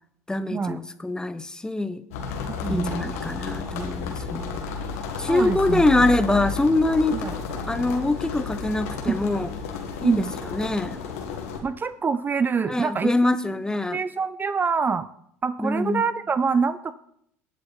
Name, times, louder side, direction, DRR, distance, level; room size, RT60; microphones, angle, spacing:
voice 1, 0.3-2.0 2.7-4.6 5.2-9.5 10.0-11.0 12.7-14.0 15.6-16.0, left 2 dB, 10° left, 13 dB, 1.0 m, -24 dB
sound 1, 2.1-11.6, left 4 dB, 75° left, 2.3 m, -32 dB
voice 2, 2.5-3.1 5.3-5.8 7.1-7.3 9.1-9.2 10.0-10.3 11.6-13.1 13.9-15.1 15.4-16.9, right 5 dB, 25° right, 15 dB, 0.5 m, -25 dB
18.5 x 7.6 x 4.4 m, 0.71 s
hypercardioid pair, 80°, 8 cm